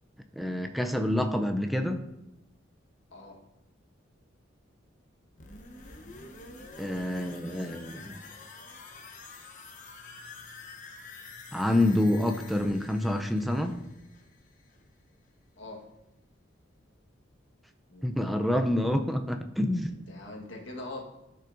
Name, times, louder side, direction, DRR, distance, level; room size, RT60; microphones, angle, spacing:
voice 1, 0.4-2.0 6.8-8.1 11.5-13.7 18.0-19.9, left 1 dB, ahead, 5 dB, 0.5 m, -27 dB
sound 1, 5.4-15.1 15.4-15.5, left 3 dB, 40° left, 0.9 m, -48 dB
voice 2, 19.8-21.0, left 2 dB, 80° left, 0 dB, 1.5 m, -42 dB
12.5 x 5.5 x 2.6 m, 0.89 s
head